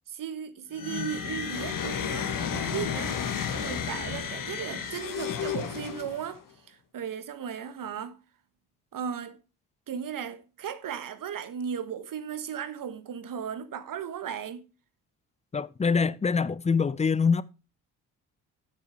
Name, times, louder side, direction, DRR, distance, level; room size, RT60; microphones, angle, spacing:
voice 1, 0.1-8.2 8.9-9.4 9.9-14.6, right 8 dB, 45° right, 1.4 m, -36 dB
sound 1, 0.7-6.4, left 8 dB, 45° left, 1.5 m, -32 dB
voice 2, 15.5-17.4, left 5 dB, 15° left, 0.5 m, -24 dB
9.7 x 7.4 x 4.5 m
hypercardioid pair, 50°, 44 cm